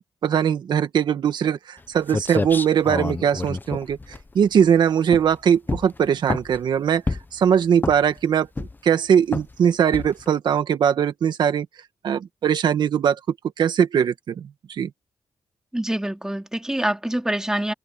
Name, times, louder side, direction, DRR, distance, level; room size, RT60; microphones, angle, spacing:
voice 1, 0.2-4.0 4.3-7.0 7.3-11.7 12.0-13.2 13.6-14.9, right 8 dB, 75° right, 1.7 m, -20 dB
sound 1, 1.8-1.9 2.1-4.7 5.1-5.4 5.7-6.6 7.1-7.4 7.8-8.2 8.6-8.9 9.3-9.6 9.9-10.3, left 3 dB, 25° left, 1.0 m, -28 dB
voice 2, 15.7-17.7, right 1 dB, 10° right, 3.0 m, -25 dB
cardioid pair, 65°, 8 cm